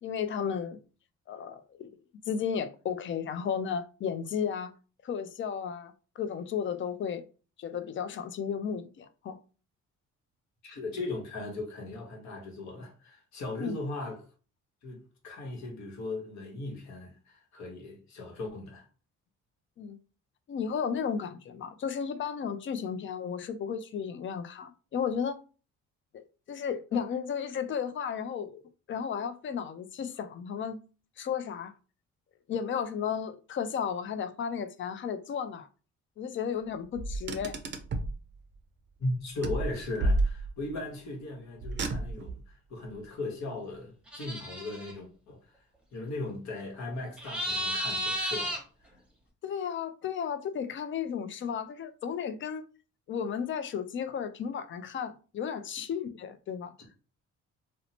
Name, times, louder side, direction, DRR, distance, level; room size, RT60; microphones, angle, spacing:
voice 1, 0.0-0.8 1.3-1.9 2.3-4.7 5.0-7.2 7.6-9.4 13.6-13.8 19.8-20.0 20.5-25.4 26.1-28.6 28.9-30.8 31.2-31.7 32.5-35.7 36.2-37.6 49.4-52.7 53.1-56.7, left 7 dB, 40° left, 0.4 m, -34 dB
voice 2, 10.6-14.2 14.8-18.8 39.0-45.4 45.9-48.6, left 2 dB, 65° left, 1.1 m, -38 dB
Car, 37.0-38.2 39.4-40.7 41.6-42.4, right 2 dB, 40° right, 0.5 m, -30 dB
sound 1, 44.1-44.9 47.2-48.6, equal, 5° right, 0.8 m, -33 dB
2.7 x 2.1 x 2.8 m
cardioid pair, 90°, 30 cm